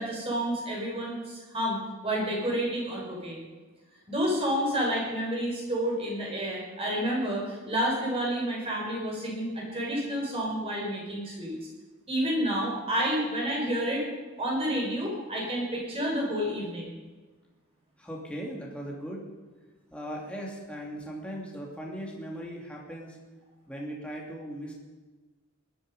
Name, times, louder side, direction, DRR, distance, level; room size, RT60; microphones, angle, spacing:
voice 1, 0.0-3.4 4.1-11.6 12.1-14.0 14.4-17.0, equal, 25° right, -2 dB, 5.4 m, -30 dB
voice 2, 18.0-19.2 19.9-23.2 23.7-24.7, equal, 5° left, -3 dB, 2.7 m, -38 dB
19.5 x 12.5 x 5.4 m, 1.3 s
head